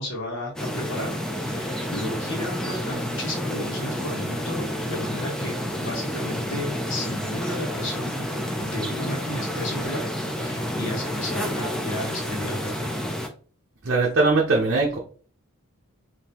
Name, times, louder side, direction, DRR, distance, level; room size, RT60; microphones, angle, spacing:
voice 1, 0.0-8.3 8.6-12.9, left 1 dB, 60° left, -1 dB, 1.5 m, -33 dB
sound 1, 0.6-13.3, equal, 5° left, 0.4 m, -29 dB
voice 2, 13.8-15.0, right 3 dB, 50° right, -2 dB, 0.7 m, -20 dB
3.6 x 2.8 x 2.9 m, 0.42 s
head